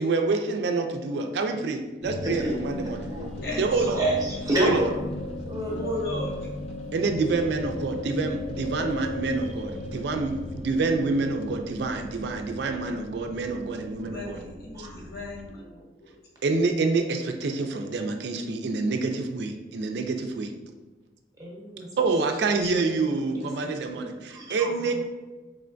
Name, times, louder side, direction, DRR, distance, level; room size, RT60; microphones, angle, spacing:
voice 1, 0.0-3.0 3.6-4.0 4.6-4.9 6.9-14.4 14.8-14.9 16.4-20.5 22.0-25.0, right 3 dB, 70° right, 5 dB, 0.4 m, -27 dB
sound 1, 2.0-15.5, left 1 dB, 35° left, 0.5 m, -37 dB
voice 2, 2.2-2.6 3.1-3.5 3.8-5.0 5.5-6.0 14.7-14.9 21.4-21.9 22.7-23.8 24.3-25.0, right 1 dB, 20° right, -3 dB, 0.8 m, -30 dB
voice 3, 5.7-6.3 14.0-15.7 22.6-22.7, left 2 dB, 55° left, -2 dB, 0.8 m, -35 dB
3.7 x 3.2 x 2.5 m, 1.2 s
head